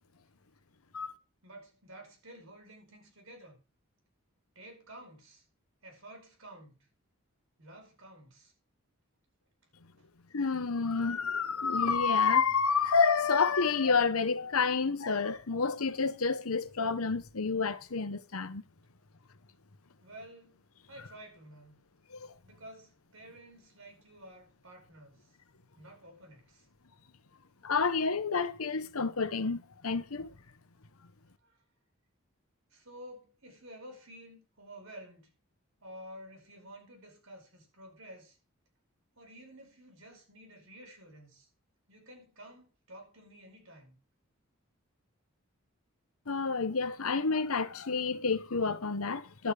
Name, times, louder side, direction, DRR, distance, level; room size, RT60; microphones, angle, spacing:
voice 1, 1.4-3.6 4.6-5.4 5.8-6.9 7.6-8.5 10.0-10.1 20.0-20.6 20.9-21.7 22.4-25.3 25.8-26.7 31.4-31.6 32.7-35.3 35.8-38.4 39.2-41.5 41.9-44.0, right 1 dB, 75° right, 5.2 m, -51 dB
voice 2, 10.3-18.6 22.1-22.3 27.6-30.3 46.3-49.5, left 5 dB, 85° left, 1.0 m, -29 dB
11.5 x 8.7 x 4.9 m
head